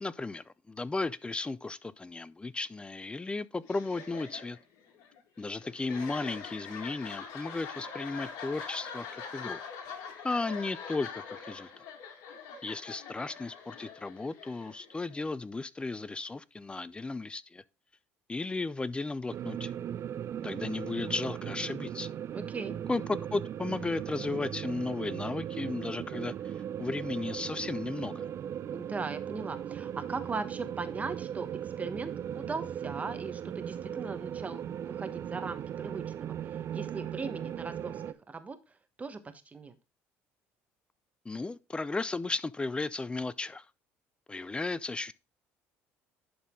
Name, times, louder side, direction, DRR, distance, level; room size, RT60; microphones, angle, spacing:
voice 1, 0.0-4.6 5.4-9.6 10.2-11.7 12.6-17.6 18.3-19.7 20.4-22.1 22.9-26.3 26.8-28.3 41.3-43.6 44.3-45.1, left 3 dB, 15° left, 0.5 m, -35 dB
sound 1, 3.6-15.3, left 6 dB, 70° left, 2.1 m, -44 dB
sound 2, 19.3-38.1, right 9 dB, 50° right, 0.5 m, -38 dB
voice 2, 22.3-22.8 28.7-36.3 36.7-39.7, right 4 dB, 25° right, 1.2 m, -39 dB
11.0 x 4.2 x 3.7 m
supercardioid pair, 80°, 6 cm